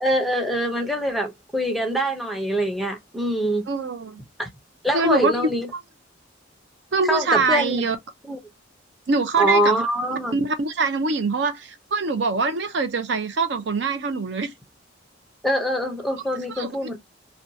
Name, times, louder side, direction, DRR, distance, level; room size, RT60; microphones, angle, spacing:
voice 1, 0.0-3.6 4.4-4.5 4.8-5.7 7.1-7.8 8.3-8.4 9.4-10.4 15.4-17.0, equal, ahead, 0.6 m, -24 dB
voice 2, 3.7-4.2 4.9-5.5 6.9-8.0 9.1-9.8 10.3-14.5 16.5-17.0, right 3 dB, 60° right, 0.5 m, -24 dB
2.6 x 2.2 x 2.6 m
head